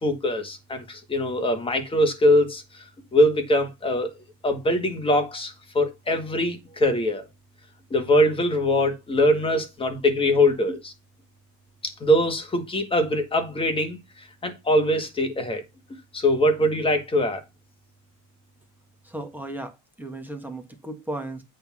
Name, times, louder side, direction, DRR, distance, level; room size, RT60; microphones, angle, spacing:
voice 1, 0.0-2.9 3.1-4.2 4.4-7.2 7.9-10.9 11.8-15.6 16.1-17.4, left 1 dB, 15° left, 1.8 m, -22 dB
voice 2, 19.0-21.4, right 1 dB, 5° right, 1.4 m, -35 dB
8.6 x 3.8 x 6.1 m
cardioid pair, 165°, 36 cm